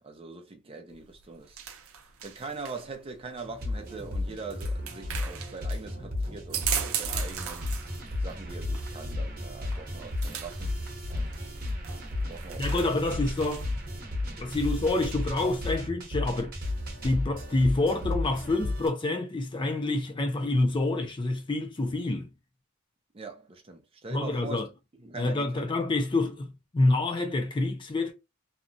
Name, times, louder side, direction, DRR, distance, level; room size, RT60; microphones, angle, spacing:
voice 1, 0.0-1.7 2.2-7.7 8.2-10.7 11.1-11.4 12.3-12.8 23.1-24.7 25.0-25.7, right 3 dB, 25° right, 0.5 m, -42 dB
sound 1, 0.9-13.9, right 9 dB, 80° right, 0.5 m, -39 dB
sound 2, 3.4-18.9, left 2 dB, 45° right, 0.9 m, -33 dB
voice 2, 12.6-13.7 14.4-16.6 17.0-22.3 24.1-24.7 25.2-28.1, left 2 dB, 25° left, 0.4 m, -27 dB
2.8 x 2.2 x 2.6 m
head